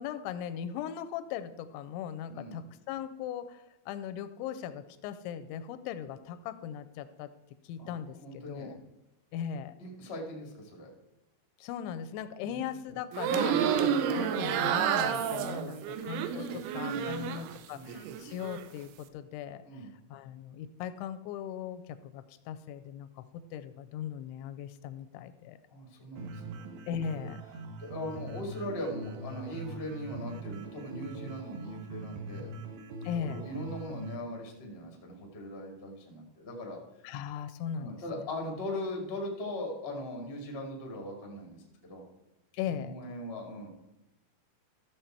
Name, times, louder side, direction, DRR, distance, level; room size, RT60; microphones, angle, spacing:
voice 1, 0.0-7.3 7.6-8.8 9.3-9.7 11.6-23.2 23.5-25.6 26.9-27.4 33.0-33.5 37.0-38.2 42.6-42.9, left 9 dB, 85° left, 12 dB, 2.9 m, -39 dB
voice 2, 2.3-2.6 7.8-8.7 9.8-10.9 12.4-12.5 16.4-16.6 16.9-17.3 17.7-18.0 19.6-19.9 25.7-26.6 27.8-32.5 33.2-36.8 37.8-42.0 42.6-43.7, left 1 dB, 50° left, 1 dB, 0.6 m, -40 dB
sound 1, 13.1-17.6 17.9-18.6, right 8 dB, 90° right, 3.2 m, -30 dB
sound 2, 26.2-34.2, right 2 dB, 70° right, 2.4 m, -42 dB
14.0 x 7.0 x 4.4 m, 0.96 s
omnidirectional pair, 5.4 m